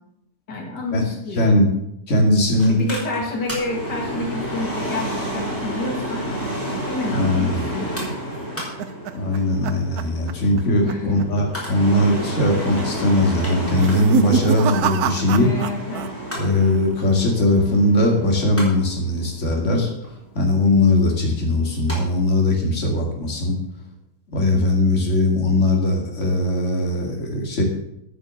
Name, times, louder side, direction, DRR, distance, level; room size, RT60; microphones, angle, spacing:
voice 1, 0.5-1.6 2.6-6.3 6.9-8.0 10.8-11.3 15.2-16.1, left 2 dB, 85° left, 2 dB, 2.6 m, -29 dB
voice 2, 1.4-1.7 2.1-2.8 7.1-7.6 9.1-15.5 16.4-19.9 20.3-23.6 24.3-27.6, left 1 dB, 45° left, 0 dB, 2.7 m, -19 dB
Mechanical fan, 2.6-22.0 22.3-22.4, equal, 5° left, 4.0 m, -31 dB
sound 1, 8.1-10.6 10.9-11.2 11.5-11.6 12.4-12.8 13.7-16.1 16.4-16.9, right 9 dB, 70° right, 1.1 m, -27 dB
9.9 x 8.9 x 6.6 m, 0.79 s
omnidirectional pair, 1.8 m